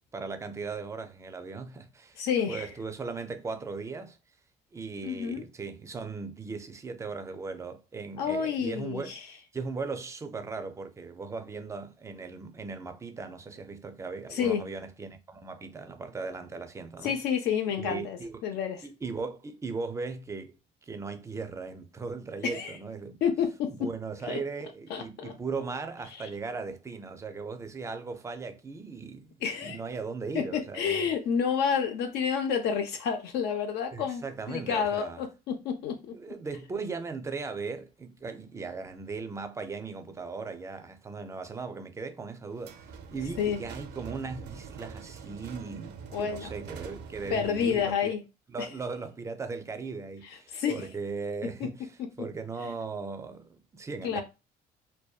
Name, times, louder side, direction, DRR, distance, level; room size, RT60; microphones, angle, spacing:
voice 1, 0.1-4.2 4.7-17.2 17.8-18.4 18.8-23.2 23.7-31.1 33.9-35.2 36.1-48.2 48.5-51.9 52.2-54.2, right 4 dB, 15° right, 0.3 m, -38 dB
voice 2, 2.2-2.7 5.0-5.4 8.2-9.2 14.3-14.6 17.0-18.8 22.4-22.8 23.2-23.7 24.3-24.4 24.9-25.3 29.4-29.8 30.3-36.1 43.4-43.6 46.1-46.5 47.3-48.2 48.6-48.7 50.5-50.9 52.0-52.1 54.0-54.2, left 7 dB, 80° left, 0.5 m, -29 dB
sound 1, 42.6-48.0, right 6 dB, 80° right, 0.5 m, -44 dB
2.6 x 2.1 x 2.3 m
cardioid pair, 110°, 17 cm